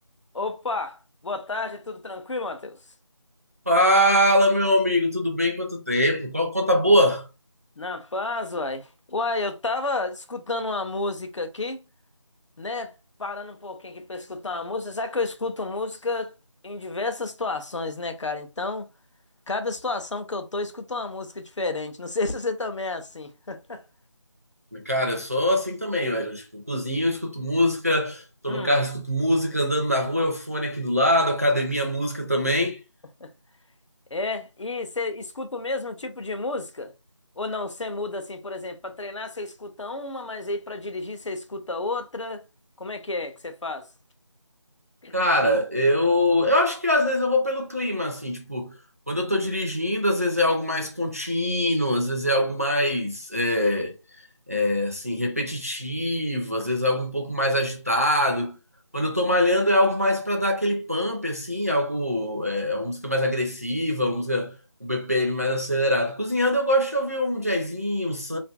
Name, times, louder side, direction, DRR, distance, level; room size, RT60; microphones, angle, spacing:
voice 1, 0.3-2.8 7.8-11.8 12.6-12.9 13.2-16.3 16.6-18.9 19.5-23.8 28.5-28.8 33.2-33.3 34.1-36.9 37.4-42.4 42.8-43.9 45.0-45.2, left 3 dB, 75° left, 0.6 m, -31 dB
voice 2, 3.7-7.3 24.7-32.8 45.1-48.8 49.1-54.0 54.5-58.6 58.9-68.4, left 1 dB, 30° right, 0.4 m, -23 dB
2.6 x 2.5 x 2.3 m
figure-of-eight pair, 175°, 16 cm